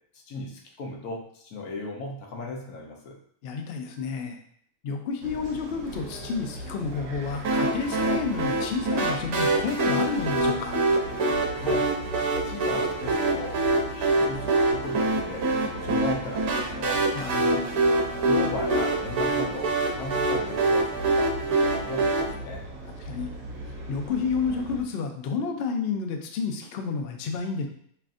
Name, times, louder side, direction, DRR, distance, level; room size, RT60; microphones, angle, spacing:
voice 1, 0.1-3.2 11.5-11.9 12.4-15.5 15.7-17.1 18.2-22.6, left 2 dB, 80° left, 0 dB, 1.2 m, -37 dB
voice 2, 3.4-4.4 4.8-10.8 17.1-17.8 23.1-23.3 23.9-27.7, left 5 dB, 65° left, 4 dB, 0.6 m, -30 dB
sound 1, 5.2-24.8, right 2 dB, 60° right, 0.8 m, -40 dB
sound 2, 7.4-22.2, right 2 dB, 85° right, 1.2 m, -25 dB
5.6 x 2.5 x 2.4 m, 0.65 s
omnidirectional pair, 1.5 m